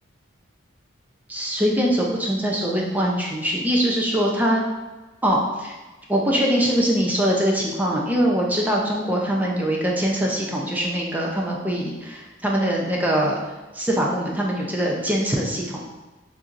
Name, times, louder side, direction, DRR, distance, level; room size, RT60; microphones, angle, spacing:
voice 1, 1.3-4.6 5.2-5.7 6.1-13.5 13.7-15.8, equal, 10° right, -2 dB, 0.5 m, -22 dB
7.3 x 2.7 x 2.5 m, 1.2 s
head